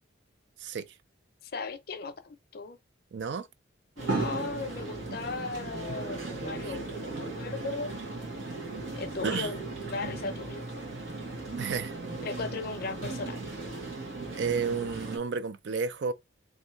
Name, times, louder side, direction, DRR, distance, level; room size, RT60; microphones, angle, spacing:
voice 1, 1.4-2.8 4.0-7.9 8.9-10.6 12.2-13.4, left 4 dB, 50° left, 0.5 m, -37 dB
voice 2, 3.1-3.5 6.7-6.8 9.2-9.5 11.6-11.9 14.4-16.1, right 5 dB, 60° right, 0.4 m, -31 dB
sound 1, 4.0-15.2, right 2 dB, 85° right, 1.6 m, -36 dB
3.2 x 2.6 x 4.3 m
head